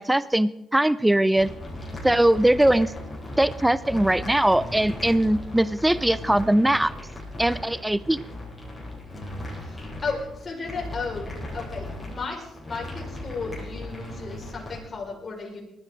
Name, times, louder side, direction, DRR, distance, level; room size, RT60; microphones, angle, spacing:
voice 1, 0.0-1.5 2.0-2.9 3.4-6.9 7.4-8.2, right 1 dB, 10° right, 17 dB, 0.4 m, -21 dB
sound 1, 1.4-14.8, left 1 dB, 15° left, 6.7 m, -37 dB
voice 2, 9.5-11.3 11.5-15.6, left 4 dB, 35° left, -1 dB, 5.3 m, -34 dB
20.0 x 13.5 x 3.9 m, 0.91 s
cardioid pair, 90°, 0 cm